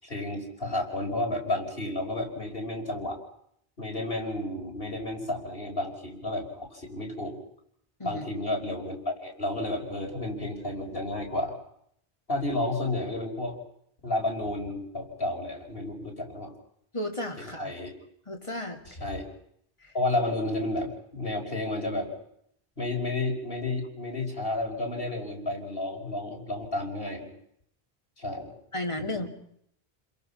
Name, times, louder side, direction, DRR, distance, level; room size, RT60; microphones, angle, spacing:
voice 1, 0.0-3.2 3.8-7.4 8.0-11.6 12.3-13.6 14.0-16.5 17.4-17.9 18.9-19.3 19.9-22.1 22.8-27.3 28.2-28.5 29.0-29.1, left 2 dB, 65° left, 0 dB, 5.4 m, -31 dB
voice 2, 16.9-17.7 18.3-18.8 28.7-29.3, left 1 dB, 30° left, 2 dB, 2.8 m, -33 dB
30.0 x 22.0 x 5.7 m, 0.71 s
omnidirectional pair, 1.0 m